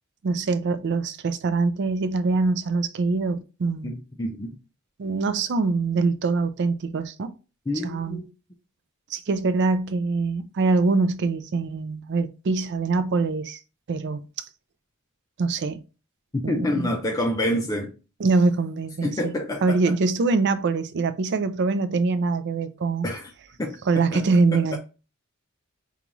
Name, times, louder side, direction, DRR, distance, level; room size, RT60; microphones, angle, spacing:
voice 1, 0.2-3.9 5.0-7.3 7.8-8.2 9.1-13.6 13.9-14.2 15.4-15.8 16.4-16.6 18.2-23.1 23.9-24.8, right 3 dB, 55° right, 0.4 m, -24 dB
voice 2, 3.8-4.6 7.7-8.3 16.3-17.9 19.0-19.8 23.0-23.3 23.6-23.8 24.1-24.2 24.5-24.8, left 1 dB, 15° left, 0.4 m, -27 dB
5.3 x 2.4 x 3.0 m
head